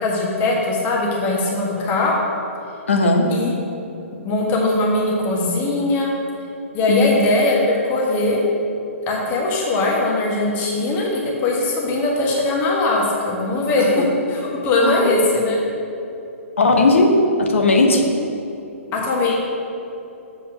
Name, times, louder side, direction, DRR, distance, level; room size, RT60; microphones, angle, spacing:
voice 1, 0.0-2.1 3.3-3.5 4.2-6.1 6.7-8.4 9.1-15.6 18.9-19.3, left 2 dB, 25° left, -2 dB, 1.4 m, -20 dB
voice 2, 2.9-3.3 6.9-7.2 14.0-14.1 14.9-15.1 16.6-18.1, left 2 dB, 65° left, 2 dB, 1.1 m, -16 dB
7.7 x 4.4 x 6.2 m, 2.8 s
figure-of-eight pair, 120°, 8 cm